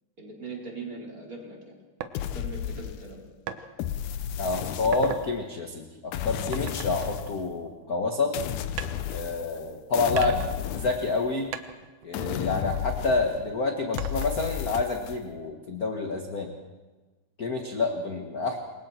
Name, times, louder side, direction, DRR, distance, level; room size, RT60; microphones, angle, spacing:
voice 1, 0.2-1.8 2.3-3.2 3.5-3.6, right 3 dB, 25° right, -2 dB, 4.7 m, -40 dB
sound 1, 2.0-2.2 3.5-3.6 4.2-4.4 4.8-5.3 6.5-8.0 8.8-9.7 10.2-11.2 11.5-13.1 14.0-14.6, right 9 dB, 90° right, 2.5 m, -38 dB
sound 2, 2.1-3.3 3.8-5.4 6.1-7.4 8.3-9.6 9.9-11.5 12.1-13.5 13.9-15.2, left 10 dB, 85° left, 2.3 m, -33 dB
voice 2, 4.4-8.3 9.1-11.5 12.0-16.5 17.4-18.6, left 3 dB, 40° left, 3 dB, 1.5 m, -28 dB
27.5 x 23.0 x 4.5 m, 1.2 s
omnidirectional pair, 3.4 m